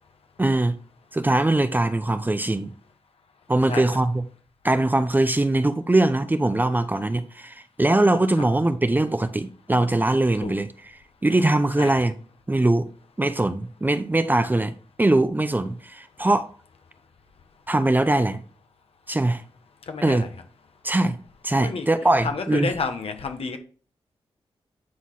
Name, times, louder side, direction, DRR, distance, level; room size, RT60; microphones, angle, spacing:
voice 1, 0.4-0.8 1.1-2.7 3.5-4.2 4.6-10.7 11.2-12.1 12.5-12.9 13.2-16.5 17.7-18.4 19.1-19.4 20.0-20.2 20.8-21.2 21.4-22.7, right 2 dB, 15° right, 0.6 m, -21 dB
voice 2, 19.9-20.3 21.6-21.9 22.2-23.6, left 4 dB, 65° left, 1.2 m, -30 dB
9.3 x 4.2 x 3.7 m
cardioid pair, 65°, 11 cm